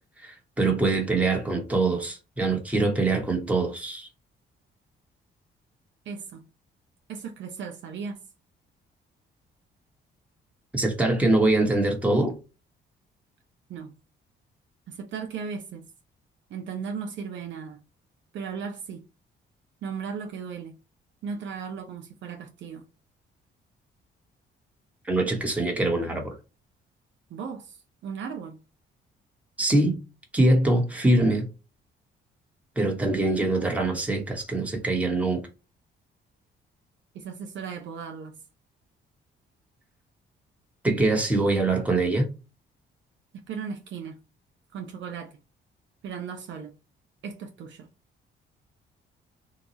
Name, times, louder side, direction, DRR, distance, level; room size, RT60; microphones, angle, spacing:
voice 1, 0.2-4.1 10.7-12.3 25.0-26.3 29.6-30.0 30.3-31.5 32.8-35.4 40.8-42.3, right 2 dB, 5° right, 1.1 m, -23 dB
voice 2, 6.1-6.5 7.1-8.2 13.7-13.9 14.9-15.9 16.5-17.8 18.3-19.0 19.8-20.8 21.2-22.8 27.3-27.8 28.0-28.6 37.1-38.4 43.5-44.2 44.7-45.3 46.0-46.8 47.2-47.9, right 6 dB, 70° right, 0.6 m, -36 dB
2.9 x 2.3 x 3.8 m
cardioid pair, 90°, 20 cm